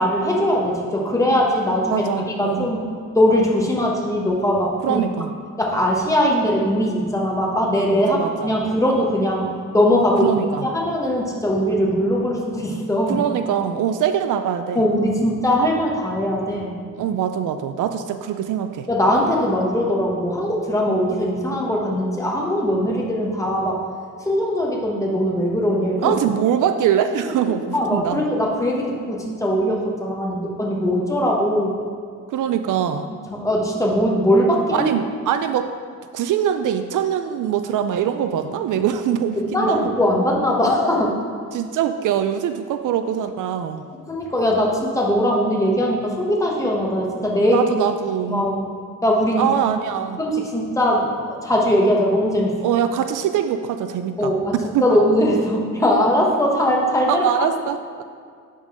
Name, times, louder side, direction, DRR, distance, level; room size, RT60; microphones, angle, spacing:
voice 1, 0.0-2.8 3.1-5.0 5.6-8.2 8.4-13.2 14.7-16.8 18.9-23.8 24.2-26.2 27.2-27.3 27.7-31.7 33.3-34.9 38.7-38.8 39.4-41.2 44.1-47.7 48.2-48.7 49.0-49.5 50.2-52.5 54.2-54.5 54.8-57.2, equal, 10° left, -2 dB, 1.2 m, -20 dB
voice 2, 1.9-2.7 4.8-5.3 8.1-8.5 10.2-10.7 13.1-14.8 17.0-18.9 26.0-28.2 32.3-33.1 34.7-35.7 36.1-39.9 41.5-43.9 47.5-48.5 49.4-50.2 52.6-55.0 57.1-58.0, right 9 dB, 70° right, 8 dB, 0.5 m, -23 dB
10.5 x 3.9 x 4.8 m, 2.2 s
cardioid pair, 140°, 32 cm